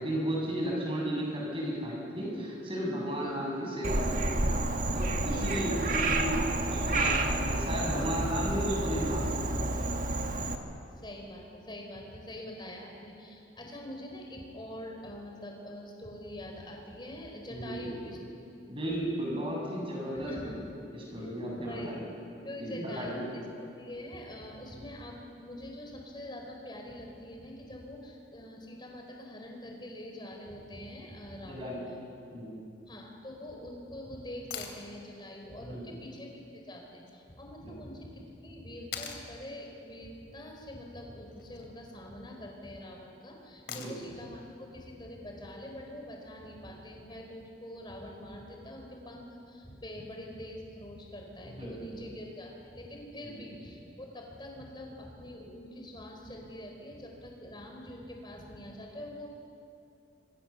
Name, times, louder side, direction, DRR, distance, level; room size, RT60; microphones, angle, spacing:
voice 1, 0.0-4.3 4.9-9.2 9.5-9.6 17.5-18.0 18.7-20.6 20.9-22.0 22.6-23.3 31.5-31.9 32.3-32.6 35.6-35.8 37.6-37.7 43.7-43.9 51.5-52.0 53.2-53.4, equal, 30° right, -2 dB, 7.5 m, -34 dB
Frog, 3.8-10.6, right 2 dB, 45° right, 1.7 m, -30 dB
voice 2, 5.3-5.9 11.0-18.2 19.3-19.4 20.1-20.6 21.2-22.0 22.4-23.2 23.8-31.7 32.9-36.3 36.7-59.3, left 1 dB, 25° left, 1 dB, 4.4 m, -44 dB
sound 1, 34.5-34.8 37.1-37.2 38.9-39.3 41.3-41.7 43.7-44.2 46.3-46.4, left 7 dB, 65° left, 2.9 m, -41 dB
26.5 x 25.0 x 7.1 m, 2.6 s
head